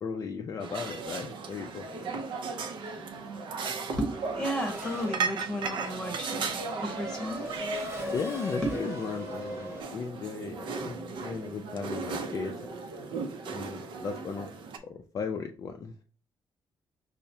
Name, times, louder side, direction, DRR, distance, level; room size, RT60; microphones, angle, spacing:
voice 1, 0.0-2.2 8.1-12.6 13.5-14.5 14.8-16.0, left 5 dB, 40° left, 3 dB, 0.3 m, -36 dB
sound 1, 0.6-14.8, right 4 dB, 65° right, 0.5 m, -36 dB
voice 2, 4.0-7.5, equal, 5° left, 1 dB, 1.0 m, -34 dB
Race car auto racing / Accelerating revving vroom, 4.1-9.8, equal, 30° right, 0.9 m, -39 dB
5.6 x 2.0 x 2.7 m, 0.38 s
cardioid pair, 165°, 9 cm